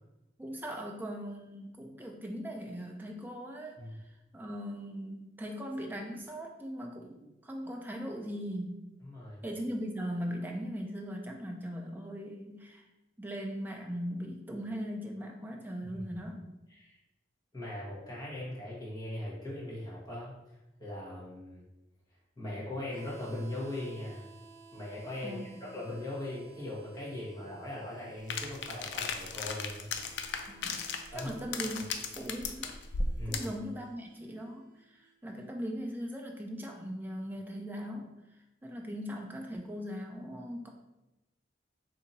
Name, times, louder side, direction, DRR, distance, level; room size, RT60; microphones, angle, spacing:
voice 1, 0.4-8.8 9.4-12.9 13.2-16.5 25.2-25.7 30.5-30.9 31.1-31.9 32.1-32.7 33.3-38.1 38.6-40.7, equal, 10° right, 1 dB, 0.4 m, -39 dB
voice 2, 9.0-9.4 15.9-16.0 16.7-17.0 17.5-20.3 20.8-21.6 22.4-24.3 24.7-29.9 31.1-31.4 33.2-33.5, left 1 dB, 20° left, -7 dB, 1.2 m, -40 dB
Harmonica, 22.8-35.5, right 5 dB, 50° right, 0.6 m, -57 dB
sound 1, 28.3-33.6, left 4 dB, 75° left, 0.4 m, -36 dB
2.8 x 2.7 x 3.9 m, 0.97 s
head